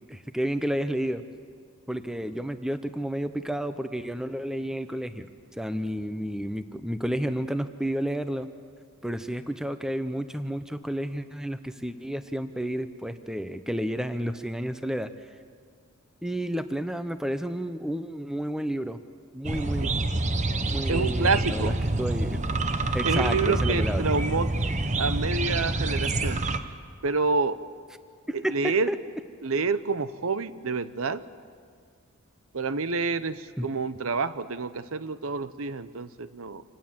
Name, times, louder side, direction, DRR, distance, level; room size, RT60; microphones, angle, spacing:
voice 1, 0.1-1.2 1.9-8.5 9.0-15.3 16.2-19.0 19.3-19.9 20.7-22.4 22.9-24.0 28.3-29.0 33.6-33.7, equal, ahead, 10 dB, 0.7 m, -31 dB
sound 1, 19.4-26.6, right 2 dB, 30° right, 0.9 m, -27 dB
voice 2, 20.9-21.8 23.0-24.5 25.0-26.4 27.0-27.6 28.3-28.9 29.4-31.2 32.5-36.6, right 4 dB, 65° right, 14 dB, 0.8 m, -28 dB
26.5 x 18.0 x 7.5 m, 2.1 s
head